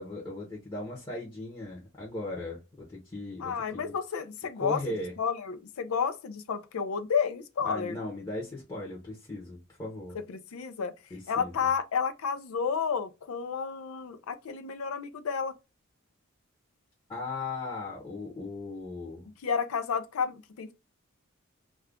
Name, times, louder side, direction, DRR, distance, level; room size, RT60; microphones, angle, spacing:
voice 1, 0.0-3.9 4.6-5.1 7.6-10.2 11.1-11.7 17.1-19.3, left 2 dB, 20° left, 0.7 m, -38 dB
voice 2, 3.4-8.0 10.1-10.9 11.3-15.5 19.4-20.7, left 6 dB, 85° left, 0.4 m, -31 dB
2.4 x 2.2 x 3.4 m
head